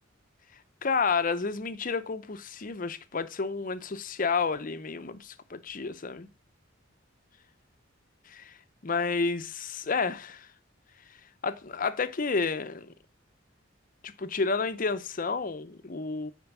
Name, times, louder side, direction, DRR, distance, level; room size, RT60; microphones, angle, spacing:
voice 1, 0.8-6.3 8.3-8.6 8.8-10.5 11.4-12.9 14.0-16.3, left 4 dB, 40° left, 0.7 m, -30 dB
8.7 x 4.5 x 6.0 m
head